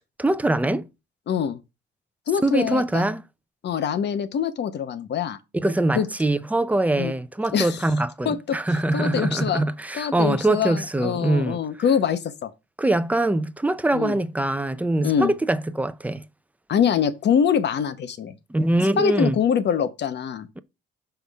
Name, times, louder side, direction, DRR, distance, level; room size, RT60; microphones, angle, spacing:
voice 1, 0.2-0.9 2.4-3.2 5.5-11.6 12.8-16.2 18.5-19.4, right 2 dB, 5° right, 0.5 m, -23 dB
voice 2, 1.3-1.6 2.3-3.0 3.6-5.4 5.9-6.1 7.0-7.1 7.5-7.8 8.2-8.6 8.9-9.6 9.9-12.5 13.9-14.2 15.0-15.3 16.7-18.3 19.0-20.5, left 7 dB, 60° left, 0.8 m, -24 dB
5.8 x 5.2 x 3.5 m
cardioid pair, 90°, 20 cm